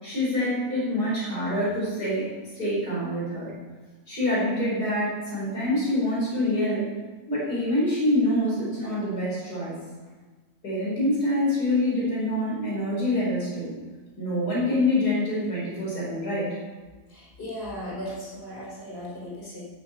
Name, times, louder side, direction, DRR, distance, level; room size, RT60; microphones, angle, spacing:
voice 1, 0.0-3.5 4.1-6.9 7.3-9.8 10.6-13.7 14.2-16.6, left 1 dB, 85° left, -6 dB, 5.9 m, -26 dB
voice 2, 17.1-19.6, equal, 40° left, -6 dB, 5.5 m, -37 dB
16.0 x 7.5 x 7.0 m, 1.3 s
omnidirectional pair, 1.6 m